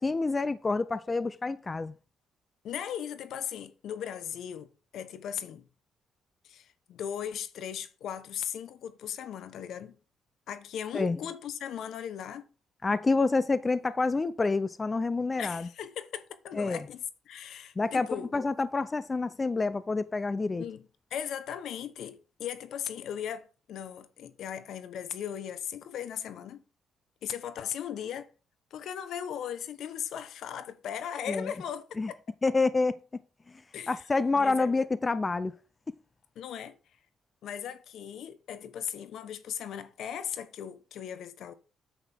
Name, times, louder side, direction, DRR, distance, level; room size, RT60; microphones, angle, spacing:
voice 1, 0.0-1.9 10.9-11.2 12.8-15.7 16.5-16.8 17.8-20.6 31.3-31.5 32.0-32.1 32.4-33.0 33.9-35.5, left 3 dB, 25° left, 0.6 m, -28 dB
voice 2, 2.6-5.7 6.4-10.0 10.5-12.4 15.4-18.3 20.5-20.8 21.1-26.6 27.2-28.3 28.7-32.2 33.7-34.0 34.3-34.7 36.4-36.8 37.4-41.5, left 9 dB, 75° left, 1.1 m, -38 dB
9.4 x 8.1 x 3.6 m
cardioid pair, 90°, 0 cm